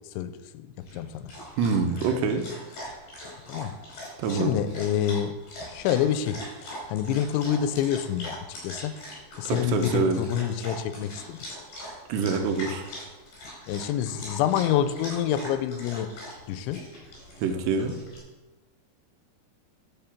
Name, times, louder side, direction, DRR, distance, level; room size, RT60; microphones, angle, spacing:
voice 1, 0.2-1.2 3.5-3.7 4.3-5.4 5.7-6.4 6.9-9.0 9.4-11.4 13.7-16.1 16.5-16.8, left 10 dB, 85° left, 12 dB, 3.0 m, -27 dB
Dog, 0.8-18.2, equal, 55° left, 6.4 m, -41 dB
voice 2, 1.6-2.5 4.2-4.6 9.4-10.2 12.1-12.9 17.4-17.9, right 5 dB, 75° right, 5 dB, 3.0 m, -25 dB
12.5 x 5.6 x 7.2 m, 1.2 s
omnidirectional pair, 5.2 m